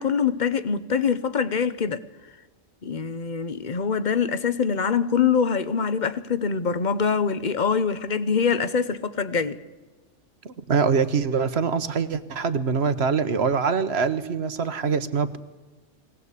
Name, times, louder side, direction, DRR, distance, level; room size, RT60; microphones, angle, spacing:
voice 1, 0.0-2.0 2.8-9.6, left 6 dB, 40° left, 1.0 m, -24 dB
voice 2, 10.4-15.4, right 5 dB, 60° right, 1.3 m, -24 dB
22.5 x 17.5 x 8.3 m
omnidirectional pair, 1.3 m